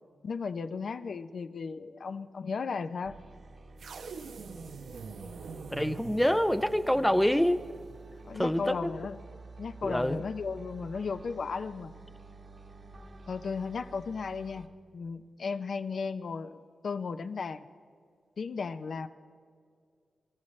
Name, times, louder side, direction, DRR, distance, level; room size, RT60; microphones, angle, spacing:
voice 1, 0.2-3.2 8.2-9.2 9.6-11.9 13.3-14.7 14.9-16.6 16.8-17.7 18.4-19.1, left 5 dB, 65° left, 9 dB, 0.6 m, -35 dB
sound 1, 3.0-14.7, right 3 dB, 50° right, 1.4 m, -50 dB
sound 2, 3.8-8.1, right 5 dB, 85° right, 0.9 m, -44 dB
voice 2, 5.7-7.6 8.3-8.9 9.8-10.2, equal, 5° left, 10 dB, 0.5 m, -26 dB
29.0 x 13.5 x 3.2 m, 2.2 s
wide cardioid pair, 100°, 0 cm